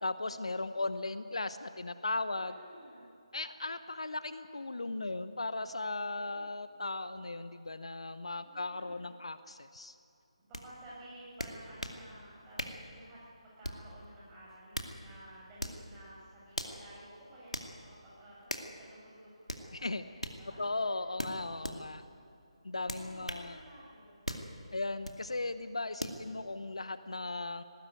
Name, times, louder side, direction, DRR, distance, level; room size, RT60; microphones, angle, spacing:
voice 1, 0.0-2.6 3.3-9.9 19.7-20.0 20.6-22.0 22.6-23.6 24.7-27.6, left 2 dB, 65° left, 12 dB, 0.9 m, -37 dB
voice 2, 2.3-3.1 6.1-6.5 8.4-9.1 10.4-21.0 21.3-21.8 22.5-24.3, right 1 dB, 15° right, -7 dB, 7.4 m, -54 dB
sound 1, 10.5-10.7 11.4-12.0 12.6-12.8 13.6-13.9 14.5-15.0 15.6-15.8 16.5-16.8 17.5-17.7 18.5-18.7 19.5-19.7 20.2-20.4 21.2-21.8 22.9-23.5 24.3-24.5 25.0-25.2 26.0-26.2, equal, 85° left, 2.3 m, -39 dB
19.5 x 18.0 x 9.4 m, 2.6 s
figure-of-eight pair, 150°, 3 cm